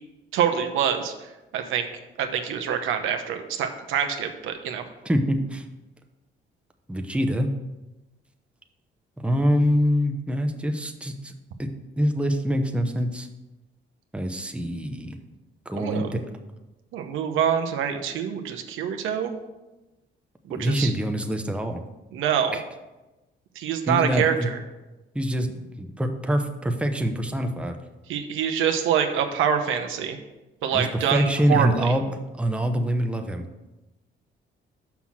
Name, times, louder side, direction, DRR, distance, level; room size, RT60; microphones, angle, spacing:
voice 1, 0.3-1.9 2.2-4.8 15.7-16.1 16.9-19.4 20.5-20.9 22.1-22.6 23.6-24.6 28.1-30.2 30.6-31.9, right 8 dB, 85° right, 6 dB, 0.8 m, -25 dB
voice 2, 5.0-5.6 6.9-7.5 9.2-11.3 11.6-11.7 12.0-13.3 14.1-15.2 15.7-16.2 20.5-21.8 22.5-22.6 23.9-24.5 25.1-27.8 30.7-33.4, equal, 5° right, 5 dB, 0.8 m, -25 dB
5.9 x 5.7 x 6.1 m, 1.0 s
cardioid pair, 90°, 20 cm